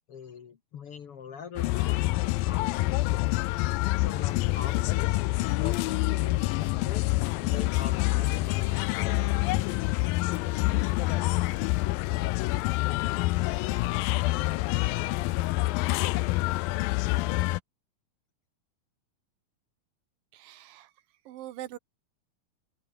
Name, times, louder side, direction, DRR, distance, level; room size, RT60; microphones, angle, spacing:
voice 1, 0.0-3.3 3.8-5.2 5.6-10.1, left 7 dB, 50° left, 2.0 m, -43 dB
sound 1, 1.6-17.6, left 19 dB, 85° left, 2.5 m, -27 dB
voice 2, 20.3-20.9 21.3-21.8, right 14 dB, 80° right, 2.8 m, -42 dB
open air
omnidirectional pair, 4.0 m